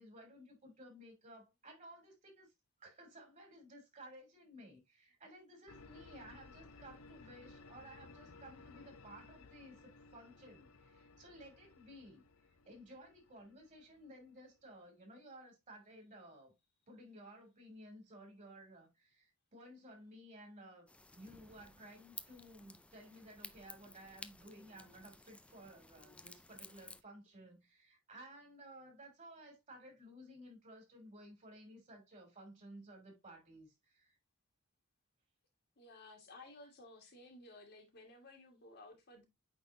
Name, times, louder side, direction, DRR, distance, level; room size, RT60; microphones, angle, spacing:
voice 1, 0.0-2.5 2.8-16.5 16.9-20.9 21.1-34.2 36.4-36.5, right 1 dB, 35° right, 3.2 m, -56 dB
sound 1, 5.7-14.5, left 3 dB, 70° left, 0.7 m, -59 dB
sound 2, 20.9-27.0, left 2 dB, 5° left, 0.4 m, -55 dB
voice 2, 35.8-39.2, left 2 dB, 50° left, 1.8 m, -56 dB
8.8 x 4.1 x 2.7 m
head